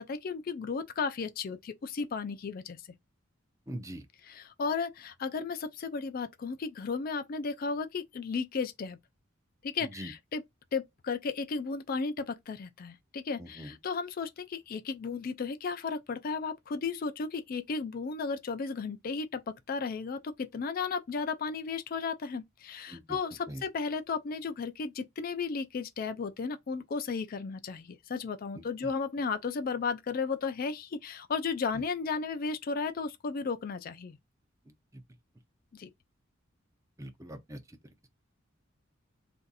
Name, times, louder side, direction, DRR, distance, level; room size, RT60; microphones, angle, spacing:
voice 1, 0.0-2.8 4.3-9.0 9.6-10.4 10.7-34.2 35.7-35.9, left 5 dB, 45° left, 0.4 m, -34 dB
voice 2, 3.7-4.1 9.8-10.1 13.4-13.8 22.9-23.2 23.5-23.6 28.5-28.9 31.7-31.8 34.9-35.0 37.0-38.1, right 1 dB, 15° right, 0.6 m, -43 dB
2.6 x 2.4 x 3.9 m
head